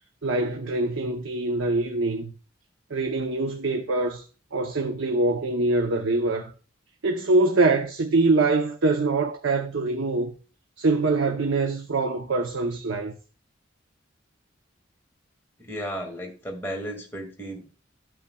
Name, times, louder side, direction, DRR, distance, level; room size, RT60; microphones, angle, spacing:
voice 1, 0.2-2.3 2.9-4.2 4.5-6.5 7.0-10.4 10.8-13.2, right 3 dB, 85° right, 0.8 m, -24 dB
voice 2, 15.6-17.7, equal, 10° left, 2.0 m, -34 dB
13.5 x 5.7 x 2.3 m
head